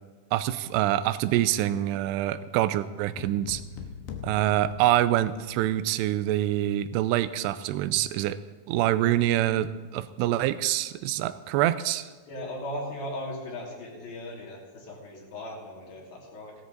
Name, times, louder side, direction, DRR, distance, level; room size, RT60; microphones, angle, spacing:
voice 1, 0.3-3.6 4.2-8.4 8.7-12.1, right 13 dB, 85° right, 13 dB, 2.7 m, -25 dB
sound 1, 3.2-5.7, left 5 dB, 80° left, 3.2 m, -42 dB
voice 2, 12.3-16.6, left 1 dB, 60° left, -3 dB, 4.6 m, -37 dB
16.5 x 13.0 x 4.0 m, 1.3 s
omnidirectional pair, 4.8 m